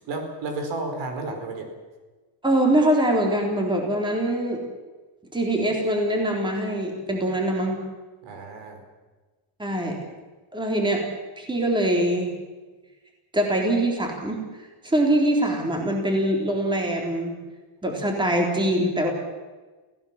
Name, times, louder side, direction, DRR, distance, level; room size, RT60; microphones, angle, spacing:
voice 1, 0.1-1.7 8.2-8.8, right 2 dB, 70° right, 6 dB, 4.8 m, -32 dB
voice 2, 2.4-4.6 5.3-7.8 9.6-10.0 10.5-11.0 11.4-12.3 13.3-14.4 14.8-17.3 17.8-19.1, right 1 dB, 10° right, 1 dB, 3.8 m, -23 dB
28.0 x 17.0 x 7.4 m, 1.3 s
cardioid pair, 175°, 45 cm